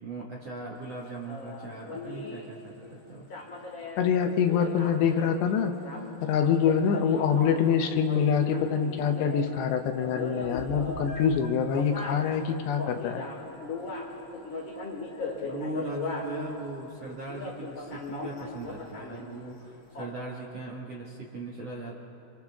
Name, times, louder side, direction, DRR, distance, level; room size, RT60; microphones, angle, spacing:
voice 1, 0.0-3.3 15.5-21.9, right 2 dB, 55° right, -3 dB, 1.9 m, -39 dB
sound 1, 0.8-16.7 16.9-17.0 17.3-19.6 19.9-20.1, left 3 dB, 35° left, 2.3 m, -38 dB
voice 2, 4.0-5.7 6.2-13.3, left 7 dB, 75° left, 6 dB, 2.9 m, -25 dB
Meow, 10.4-20.0, equal, 55° left, 4.2 m, -51 dB
28.5 x 26.5 x 3.6 m, 2.8 s
omnidirectional pair, 5.2 m